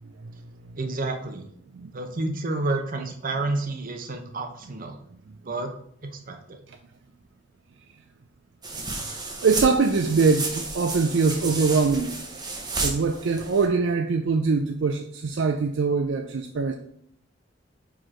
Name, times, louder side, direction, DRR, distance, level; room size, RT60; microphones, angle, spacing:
voice 1, 0.8-1.5 1.9-5.0 5.4-5.7 6.0-6.6, right 2 dB, 45° right, 5 dB, 0.8 m, -30 dB
sound 1, 8.6-13.7, right 3 dB, 20° right, 0.9 m, -32 dB
voice 2, 9.4-12.1 12.8-16.7, right 4 dB, 65° right, 5 dB, 0.4 m, -23 dB
4.8 x 4.5 x 4.4 m, 0.69 s
head